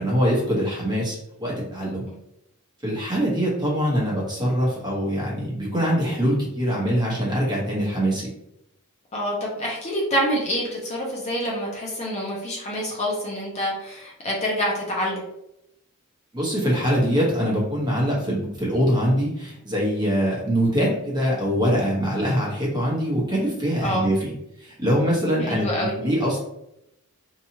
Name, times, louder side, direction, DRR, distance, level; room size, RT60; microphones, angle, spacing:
voice 1, 0.0-2.0 2.8-8.3 16.3-24.3 24.6-26.4, equal, 20° right, -5 dB, 1.0 m, -23 dB
voice 2, 9.1-15.2 23.8-24.0 25.4-25.9, equal, 30° left, -3 dB, 0.6 m, -27 dB
2.8 x 2.3 x 2.8 m, 0.82 s
head